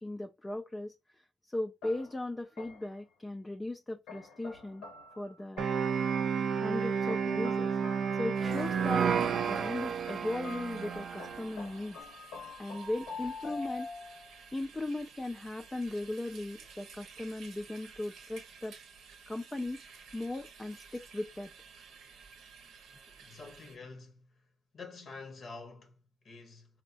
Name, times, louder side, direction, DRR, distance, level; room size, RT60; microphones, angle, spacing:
voice 1, 0.0-4.8 5.2-5.7 6.5-7.7 8.2-9.1 9.3-12.0 12.6-14.2 14.5-18.8 19.3-19.8 20.1-21.5, left 2 dB, 15° left, 0.3 m, -38 dB
sound 1, 1.8-3.0 4.1-6.0 7.1-9.0 10.1-14.4, left 4 dB, 90° left, 1.1 m, -46 dB
sound 2, 5.6-11.5, right 6 dB, 55° right, 0.4 m, -31 dB
sound 3, 8.3-23.8, right 5 dB, 80° right, 0.8 m, -53 dB
voice 2, 23.2-24.4 24.7-26.8, left 3 dB, 50° left, 0.7 m, -48 dB
4.4 x 2.1 x 2.5 m
cardioid pair, 90°, 0 cm